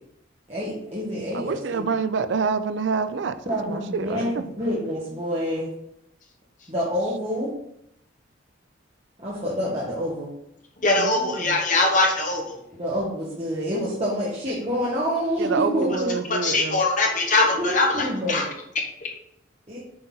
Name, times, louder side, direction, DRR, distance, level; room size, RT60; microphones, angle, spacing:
voice 1, 0.5-1.9 3.4-4.3 4.6-5.7 6.7-7.5 9.2-10.3 12.7-16.1 17.6-18.5 19.7-19.8, equal, 30° right, -8 dB, 1.4 m, -27 dB
voice 2, 1.3-4.4 11.0-11.6 15.4-16.8, right 5 dB, 65° right, 12 dB, 0.4 m, -27 dB
voice 3, 10.8-12.6 16.4-18.4, left 2 dB, 40° left, 1 dB, 1.3 m, -22 dB
7.7 x 4.1 x 3.9 m, 0.77 s
head